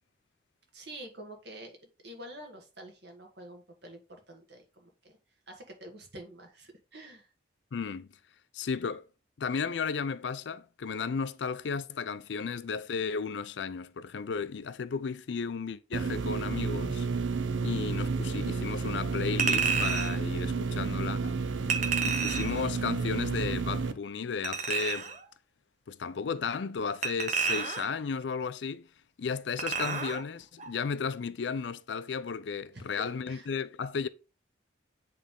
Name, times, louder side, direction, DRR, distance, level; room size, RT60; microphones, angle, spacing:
voice 1, 0.7-1.8 2.0-5.1 5.5-7.3 32.7-33.5, right 1 dB, 65° right, 1.8 m, -47 dB
voice 2, 7.7-8.1 8.5-9.1 9.4-17.1 17.6-21.4 22.0-25.0 25.9-28.9 29.2-34.1, left 5 dB, 70° left, 0.4 m, -34 dB
sound 1, 15.9-23.9, right 4 dB, 85° right, 0.6 m, -31 dB
Chink clink, 19.4-20.2 21.7-22.6 24.4-25.2 27.0-28.0 29.6-30.2 30.6-30.7, right 5 dB, 40° right, 0.7 m, -30 dB
8.3 x 3.4 x 3.7 m
head